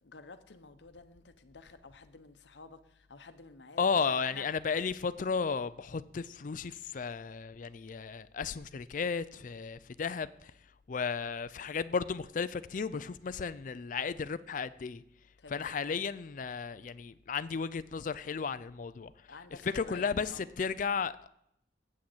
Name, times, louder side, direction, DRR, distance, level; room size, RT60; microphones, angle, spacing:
voice 1, 0.0-4.5 15.4-15.7 19.3-20.5, left 4 dB, 90° left, 0.9 m, -51 dB
voice 2, 3.8-10.5 10.9-15.0 15.5-19.1 19.6-21.3, left 5 dB, 50° left, 0.4 m, -34 dB
8.5 x 6.4 x 7.8 m
head